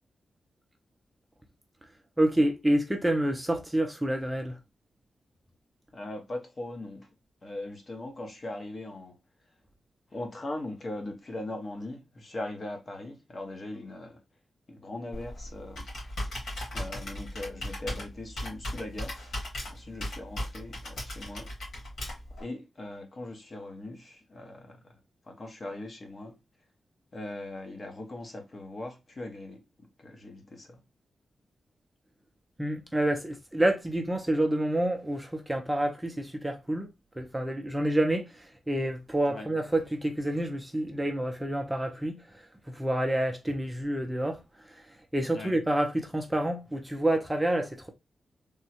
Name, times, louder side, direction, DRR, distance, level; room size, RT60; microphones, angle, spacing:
voice 1, 2.2-4.6 32.6-36.9 37.2-38.3 38.7-42.2 42.7-44.4 45.1-47.9, right 1 dB, 10° right, 0.5 m, -28 dB
voice 2, 5.9-7.1 7.4-9.2 10.1-14.2 14.7-15.8 16.7-19.2 19.6-21.5 22.4-24.8 25.2-26.4 27.1-29.6 30.0-30.8 39.3-39.5 45.3-45.5, left 2 dB, 40° left, 0.9 m, -40 dB
Computer keyboard, 15.1-22.4, left 1 dB, 70° left, 1.8 m, -37 dB
3.4 x 2.1 x 2.9 m
wide cardioid pair, 115°, 0 cm